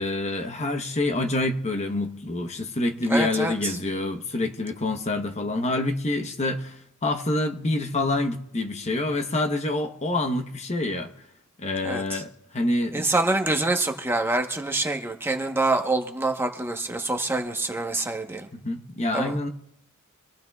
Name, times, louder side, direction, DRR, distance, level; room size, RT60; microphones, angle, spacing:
voice 1, 0.0-11.1 11.6-13.0 18.5-19.5, left 2 dB, 30° left, 1.0 m, -27 dB
voice 2, 3.1-3.8 11.8-12.2 12.9-18.5 19.1-19.4, right 2 dB, 10° right, 1.0 m, -26 dB
25.0 x 15.5 x 2.4 m
head